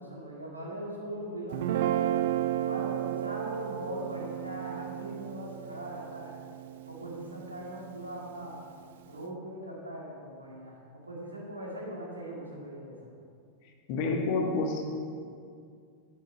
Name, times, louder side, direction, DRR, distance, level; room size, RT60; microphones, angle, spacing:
voice 1, 0.0-2.2 2.6-6.4 6.9-8.6 9.1-13.0, right 1 dB, 85° right, -3 dB, 2.2 m, -40 dB
Guitar, 1.5-7.8, right 12 dB, 55° right, 0.3 m, -33 dB
voice 2, 13.9-14.9, left 3 dB, 45° left, 2 dB, 1.4 m, -29 dB
9.7 x 9.0 x 4.5 m, 2.2 s
figure-of-eight pair, 90°, 0 cm